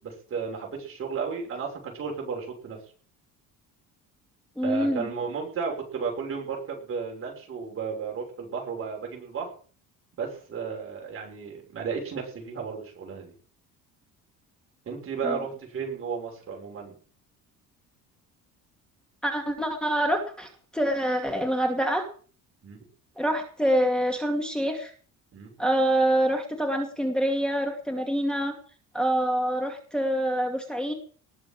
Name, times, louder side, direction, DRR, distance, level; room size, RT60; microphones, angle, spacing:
voice 1, 0.0-2.8 4.6-9.5 10.2-13.3 14.8-16.9 22.6-22.8 25.3-25.5, right 5 dB, 40° right, 0 dB, 6.6 m, -33 dB
voice 2, 4.6-5.1 15.2-15.4 19.2-22.1 23.2-24.9 25.6-28.6 28.9-30.9, right 1 dB, ahead, 2 dB, 2.5 m, -26 dB
20.0 x 7.4 x 7.7 m, 0.43 s
cardioid pair, 155°, 33 cm